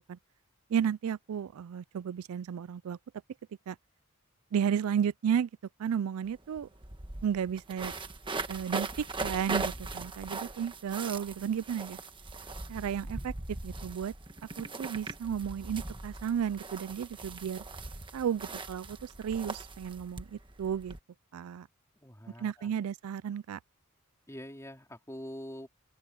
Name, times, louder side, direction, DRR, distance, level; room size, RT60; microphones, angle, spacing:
voice 1, 0.7-3.0 3.7-3.8 4.5-5.5 5.8-6.7 7.2-8.0 8.5-12.0 12.7-13.3 13.6-14.1 14.6-17.6 18.1-20.9 21.3-21.7 22.4-23.6, right 8 dB, 85° right, 0.4 m, -33 dB
sound 1, 6.2-6.3 6.6-21.0, right 3 dB, 25° right, 1.4 m, -40 dB
voice 2, 22.0-22.7 24.3-25.7, equal, 15° left, 3.7 m, -44 dB
open air
head